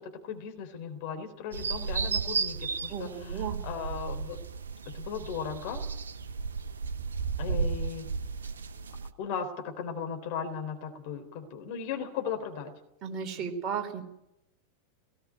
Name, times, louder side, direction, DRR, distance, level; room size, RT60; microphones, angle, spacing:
voice 1, 0.0-4.4 4.9-5.8 7.4-8.1 9.2-12.7 13.4-13.5, left 7 dB, 45° left, 5 dB, 3.8 m, -37 dB
sound 1, 1.5-9.1, right 5 dB, 70° right, 0.9 m, -34 dB
voice 2, 2.9-3.6 13.0-14.0, right 7 dB, 30° right, 4 dB, 3.8 m, -34 dB
18.5 x 17.0 x 9.4 m, 0.84 s
figure-of-eight pair, 90°, 0 cm